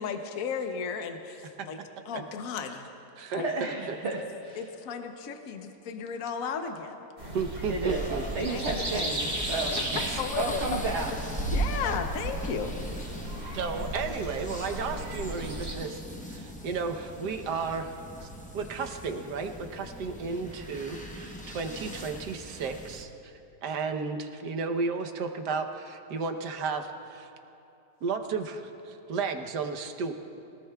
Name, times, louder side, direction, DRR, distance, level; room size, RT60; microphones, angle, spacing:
voice 1, 0.0-1.8 2.1-2.9 3.3-3.5 4.5-7.0 8.5-9.0 9.7-10.8 11.5-12.7, left 6 dB, 60° left, 5 dB, 1.2 m, -34 dB
voice 2, 3.4-4.6 7.7-8.0 8.3-9.7 10.3-11.1, right 3 dB, 45° right, -2 dB, 1.3 m, -32 dB
sound 1, 7.2-15.7, right 1 dB, 30° right, 2.8 m, -34 dB
voice 3, 7.3-8.2 9.9-10.2 13.5-16.0 16.3-17.9 18.2-18.3 18.5-23.3 23.6-27.3 28.0-30.1, right 4 dB, 75° right, 5 dB, 1.4 m, -33 dB
sound 2, 7.9-23.0, equal, 10° left, 0.5 m, -41 dB
24.0 x 18.5 x 2.3 m, 2.8 s
omnidirectional pair, 1.8 m